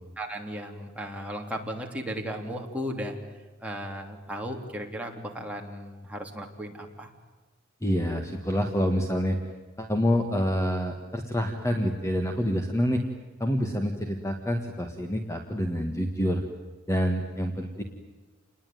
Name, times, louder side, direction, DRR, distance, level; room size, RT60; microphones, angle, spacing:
voice 1, 0.2-3.2 3.6-7.1, equal, 5° right, 0 dB, 3.3 m, -35 dB
voice 2, 7.8-9.4 9.8-13.0 13.4-16.4 16.9-17.8, equal, 15° left, 4 dB, 1.7 m, -27 dB
29.0 x 20.5 x 9.4 m, 1.3 s
head